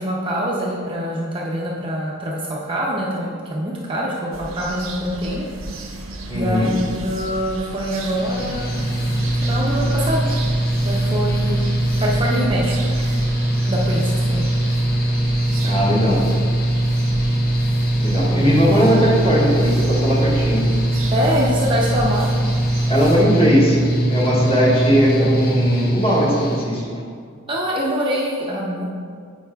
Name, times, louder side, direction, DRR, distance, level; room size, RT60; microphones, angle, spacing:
voice 1, 0.0-5.5 6.3-8.7 9.4-10.5 10.8-11.6 12.0-12.7 13.7-14.5 21.1-22.3 27.5-28.8, equal, 25° right, -4 dB, 0.5 m, -24 dB
sound 1, 4.3-23.3, right 2 dB, 80° right, 0.7 m, -33 dB
voice 2, 6.3-6.7 15.6-16.3 18.0-20.8 22.9-27.0, equal, 30° left, -7 dB, 1.4 m, -18 dB
Mechanical fan, 8.2-26.6, right 1 dB, 45° left, 0.6 m, -21 dB
9.0 x 4.7 x 2.3 m, 2.1 s
head